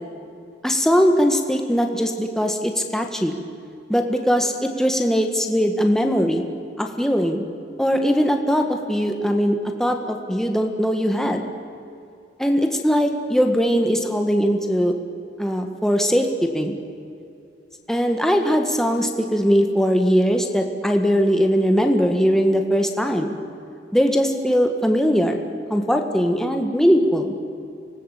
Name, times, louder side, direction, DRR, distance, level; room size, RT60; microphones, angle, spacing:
voice 1, 0.6-3.4 3.9-6.4 6.8-7.4 7.8-11.4 12.4-14.9 15.4-16.8 17.9-23.4 23.9-27.3, equal, 5° left, 4 dB, 1.6 m, -20 dB
26.0 x 19.0 x 8.3 m, 2.6 s
head